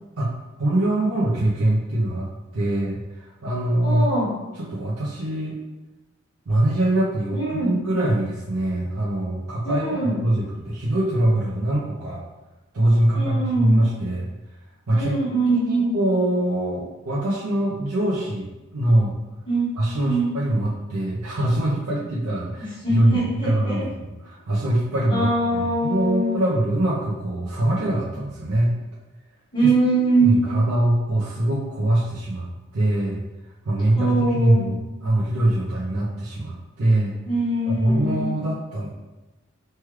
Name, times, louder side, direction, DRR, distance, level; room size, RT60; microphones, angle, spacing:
voice 1, 0.6-2.3 2.5-3.0 3.4-4.1 4.7-5.6 6.5-12.2 12.7-14.3 14.9-15.1 15.7-18.5 18.7-19.2 19.8-28.7 30.2-32.5 32.7-33.2 33.6-37.2 37.7-38.9, right 1 dB, 85° right, -7 dB, 0.6 m, -23 dB
voice 2, 3.8-4.4 7.3-7.8 9.6-10.2 13.1-13.8 14.9-16.0 19.5-19.8 20.0-20.4 22.6-23.9 25.1-26.4 29.5-30.7 34.0-34.7 37.2-38.3, right 2 dB, 25° left, -8 dB, 1.1 m, -23 dB
3.2 x 2.3 x 3.1 m, 1.1 s
head